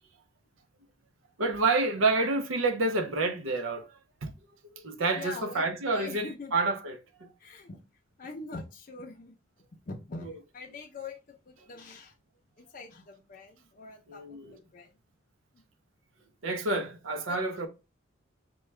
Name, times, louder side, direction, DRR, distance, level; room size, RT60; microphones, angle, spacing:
voice 1, 1.4-4.3 4.7-7.3 14.1-14.4 16.4-17.7, right 3 dB, 80° right, 0.6 m, -29 dB
voice 2, 5.2-6.5 7.4-7.8 8.2-9.4 9.7-12.1 12.6-14.9 15.5-15.6 17.3-17.4, left 3 dB, 40° left, 0.5 m, -43 dB
4.6 x 2.2 x 3.1 m
head